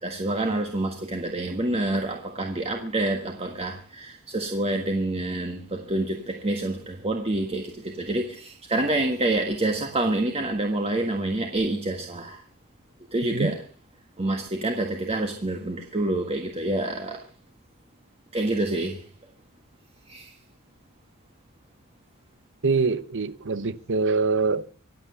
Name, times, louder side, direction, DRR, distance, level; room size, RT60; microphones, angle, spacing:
voice 1, 0.0-12.4 13.1-13.6 14.2-17.3 18.3-19.0 20.1-20.3, right 2 dB, 25° right, 1.6 m, -27 dB
voice 2, 22.6-24.6, right 4 dB, 55° right, 0.9 m, -24 dB
25.5 x 8.5 x 5.7 m
head